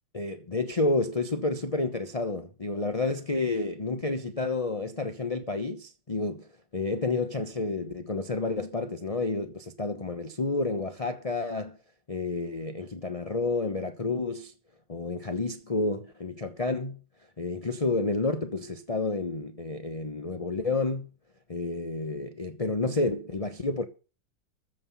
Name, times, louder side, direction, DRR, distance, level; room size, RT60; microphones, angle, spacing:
voice 1, 0.1-11.8 12.1-14.5 14.9-17.0 17.4-21.1 21.5-23.8, left 3 dB, 25° left, 0.8 m, -30 dB
14.5 x 5.7 x 7.2 m
omnidirectional pair, 2.1 m